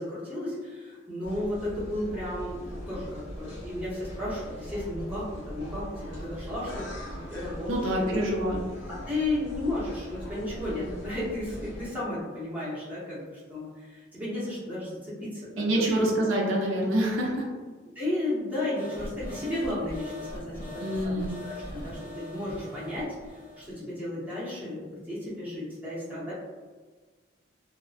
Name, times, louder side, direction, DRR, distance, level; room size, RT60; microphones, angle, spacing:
voice 1, 0.0-8.4 8.9-16.1 17.9-23.2 23.6-26.3, left 1 dB, 10° right, -9 dB, 0.8 m, -34 dB
sound 1, 1.2-11.9, equal, 75° left, 1.1 m, -40 dB
voice 2, 7.7-8.6 15.6-17.4 20.8-21.3, right 1 dB, 90° right, -1 dB, 0.5 m, -26 dB
sound 2, 18.7-23.7, left 1 dB, 45° left, 1.1 m, -41 dB
2.5 x 2.1 x 2.4 m, 1.4 s
head